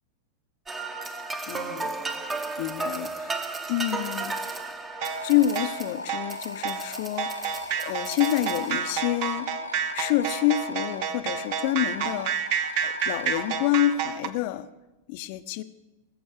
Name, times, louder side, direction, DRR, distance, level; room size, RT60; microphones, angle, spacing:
sound 1, 0.7-9.0, right 3 dB, 15° right, 1.2 m, -35 dB
voice 1, 1.5-2.0 2.6-4.3 5.2-7.5 7.8-9.5 9.9-14.7 15.1-15.6, left 13 dB, 45° left, 12 dB, 0.8 m, -28 dB
sound 2, 5.0-13.7, left 2 dB, 85° left, 0.5 m, -39 dB
sound 3, 5.0-14.3, right 7 dB, 45° right, 1.0 m, -30 dB
20.5 x 7.1 x 6.6 m, 1.0 s
figure-of-eight pair, 90°, 0 cm